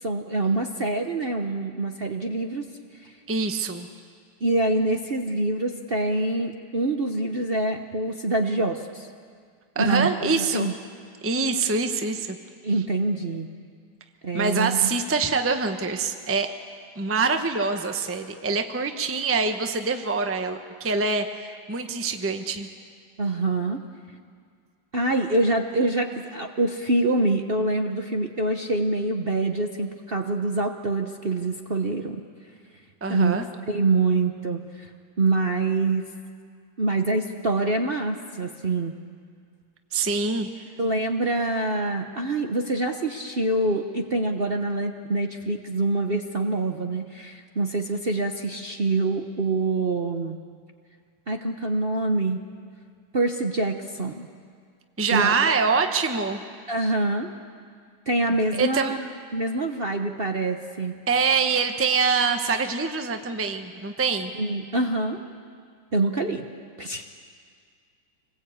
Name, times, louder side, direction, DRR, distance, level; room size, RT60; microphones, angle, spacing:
voice 1, 0.0-2.6 4.4-9.1 9.8-10.7 12.6-13.5 14.2-14.9 23.2-23.8 24.9-32.2 33.1-34.9 35.2-36.1 36.8-38.9 40.8-50.4 51.3-52.4 53.1-54.3 55.1-55.6 56.7-57.3 58.1-59.0 59.3-60.9 64.4-65.2 65.9-66.4 66.8-67.1, right 2 dB, 40° right, 4 dB, 0.9 m, -25 dB
voice 2, 3.3-3.9 9.7-10.7 11.2-12.4 14.3-16.5 17.0-22.7 33.0-33.4 39.9-40.5 55.0-56.4 58.5-58.9 61.1-64.3, right 4 dB, 10° right, 6 dB, 0.8 m, -25 dB
26.5 x 20.0 x 8.6 m, 2.1 s
omnidirectional pair, 2.1 m